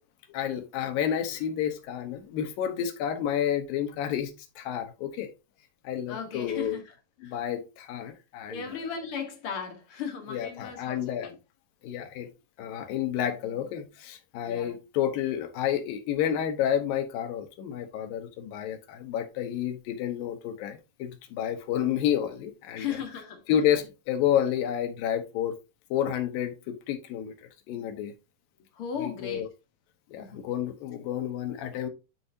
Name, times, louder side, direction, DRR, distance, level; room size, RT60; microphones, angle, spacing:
voice 1, 0.3-5.3 5.8-6.8 7.2-8.6 10.3-11.3 11.8-12.3 12.6-22.9 23.5-25.6 25.9-27.3 27.7-28.1 29.0-29.5 30.1-31.9, left 10 dB, 80° left, 2.7 m, -30 dB
voice 2, 6.1-6.8 7.2-7.4 8.5-11.4 14.4-14.8 22.7-23.4 28.7-29.5 30.2-30.4, left 7 dB, 60° left, 1.5 m, -36 dB
10.0 x 4.5 x 2.7 m
omnidirectional pair, 4.1 m